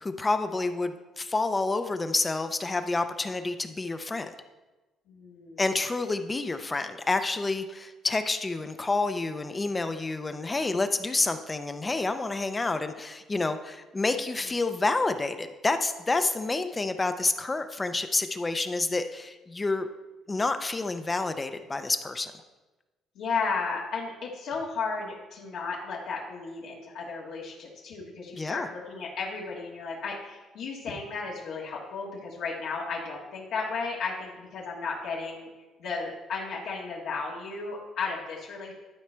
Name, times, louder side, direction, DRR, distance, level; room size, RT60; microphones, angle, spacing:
voice 1, 0.0-4.3 5.6-19.9 20.3-22.3 28.3-28.7, left 3 dB, 20° left, 9 dB, 0.5 m, -29 dB
voice 2, 5.1-5.6 23.1-35.5 35.8-38.7, left 4 dB, 75° left, -4 dB, 1.5 m, -34 dB
11.5 x 4.8 x 4.4 m, 1.2 s
cardioid pair, 130°, 0 cm